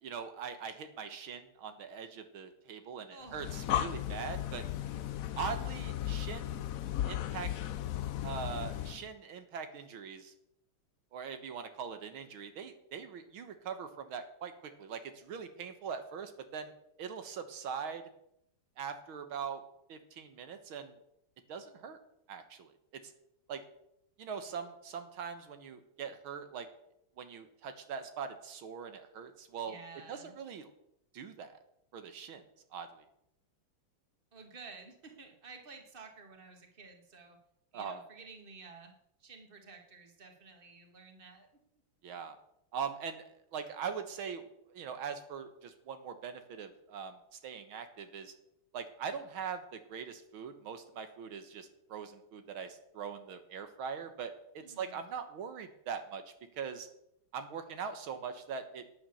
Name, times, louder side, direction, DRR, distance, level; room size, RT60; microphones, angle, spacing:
voice 1, 0.0-4.6 5.4-6.7 7.1-7.5 8.2-10.3 11.1-16.7 17.0-18.0 18.8-19.6 19.9-21.0 21.5-22.0 22.3-23.1 23.5-23.6 24.2-26.7 27.2-29.8 30.1-30.7 31.1-31.6 31.9-32.4 32.7-33.0 37.7-38.0 42.0-42.4 42.7-43.2 43.5-48.3 48.7-56.2 56.5-56.9 57.3-58.9, right 6 dB, 80° right, 8 dB, 2.0 m, -42 dB
voice 2, 3.1-3.4 29.7-30.4 34.3-37.4 37.7-38.9 39.2-41.5 54.6-55.0, right 4 dB, 25° right, 4 dB, 2.0 m, -52 dB
Breathing, 3.3-9.1, left 12 dB, 70° left, 0.8 m, -36 dB
12.0 x 9.1 x 7.0 m, 0.77 s
omnidirectional pair, 2.2 m